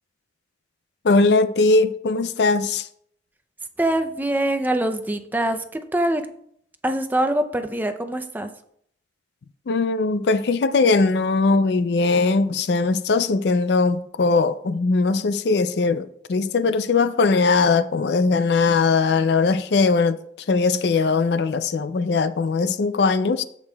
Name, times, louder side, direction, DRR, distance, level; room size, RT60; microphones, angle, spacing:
voice 1, 1.0-2.9 9.7-20.2 20.5-23.4, left 4 dB, 65° left, 0.4 m, -20 dB
voice 2, 3.8-6.2 6.8-8.5, right 1 dB, 10° right, 0.5 m, -24 dB
14.5 x 5.3 x 2.3 m
head